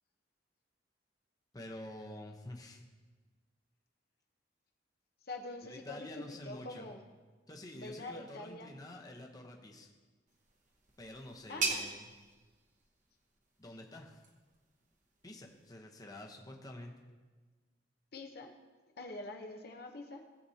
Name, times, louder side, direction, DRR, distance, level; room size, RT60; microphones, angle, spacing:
voice 1, 1.5-2.8 5.6-6.9 7.5-9.9 11.0-12.0 13.6-14.2 15.2-16.9, left 1 dB, 20° left, 1 dB, 0.9 m, -48 dB
voice 2, 5.2-7.0 7.7-8.7 11.5-11.9 18.1-18.5 19.0-20.2, left 2 dB, 60° left, 3 dB, 0.9 m, -45 dB
sound 1, 10.3-15.7, right 4 dB, 45° right, 1.2 m, -42 dB
18.0 x 7.7 x 2.8 m, 1.3 s
head